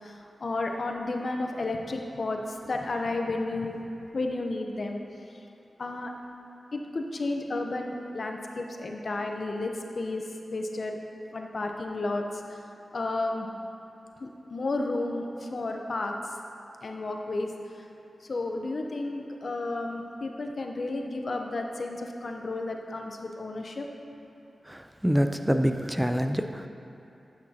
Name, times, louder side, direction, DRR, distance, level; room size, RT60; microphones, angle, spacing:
voice 1, 0.0-3.8 4.1-5.0 5.8-6.1 6.7-11.0 11.3-12.6 12.9-13.5 14.2-16.3 16.8-17.9 18.2-23.9, left 2 dB, 65° left, 3 dB, 0.8 m, -32 dB
voice 2, 24.7-26.7, equal, 10° right, 7 dB, 0.6 m, -26 dB
10.0 x 8.8 x 2.9 m, 2.7 s
cardioid pair, 45°, 0 cm